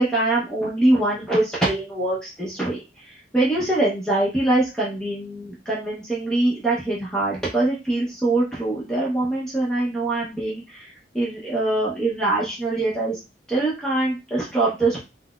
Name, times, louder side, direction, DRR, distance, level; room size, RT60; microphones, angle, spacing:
voice 1, 0.0-2.8 3.3-10.9 11.1-13.2 13.5-15.0, right 2 dB, 5° left, -6 dB, 0.7 m, -23 dB
3.9 x 2.0 x 2.3 m, 0.27 s
head